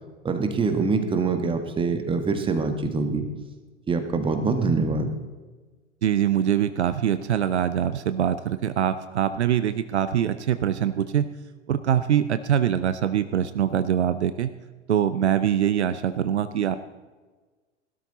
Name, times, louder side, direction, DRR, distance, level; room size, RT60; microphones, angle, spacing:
voice 1, 0.2-3.3 3.9-5.1, right 4 dB, 15° right, 7 dB, 1.6 m, -24 dB
voice 2, 6.0-11.3 11.7-14.5 14.9-16.8, right 9 dB, 70° right, 12 dB, 0.7 m, -23 dB
16.5 x 12.5 x 4.1 m, 1.3 s
figure-of-eight pair, 95°, 35 cm